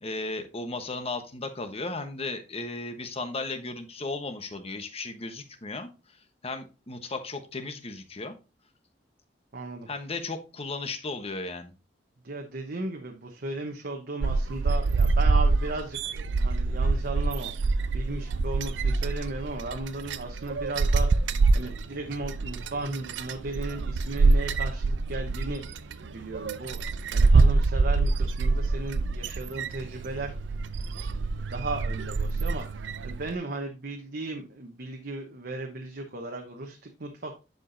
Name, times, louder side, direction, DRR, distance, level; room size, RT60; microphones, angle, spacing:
voice 1, 0.0-5.9 6.4-8.4 9.9-11.7, left 3 dB, 35° left, 8 dB, 1.1 m, -35 dB
voice 2, 9.5-9.9 12.2-21.1 21.5-25.6 26.0-26.8 27.1-30.3 30.9-32.7 33.0-37.3, right 2 dB, 60° right, 2 dB, 1.0 m, -36 dB
sound 1, 14.2-33.3, right 3 dB, 90° right, 0.5 m, -25 dB
10.5 x 4.9 x 2.6 m, 0.30 s
head